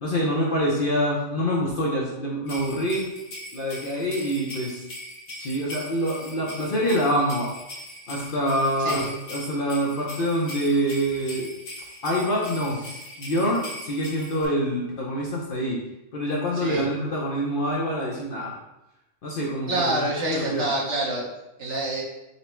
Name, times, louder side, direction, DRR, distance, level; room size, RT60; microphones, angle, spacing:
voice 1, 0.0-3.1 3.5-4.8 5.4-7.5 8.1-11.5 12.0-15.8 16.1-18.6 19.2-20.1 20.3-20.7, equal, 55° left, -4 dB, 0.7 m, -26 dB
sound 1, 2.5-14.5, left 1 dB, 85° left, 1.3 m, -40 dB
voice 2, 19.7-21.2 21.6-22.0, right 1 dB, 60° right, -4 dB, 1.3 m, -26 dB
4.1 x 2.0 x 4.2 m, 0.93 s
omnidirectional pair, 1.4 m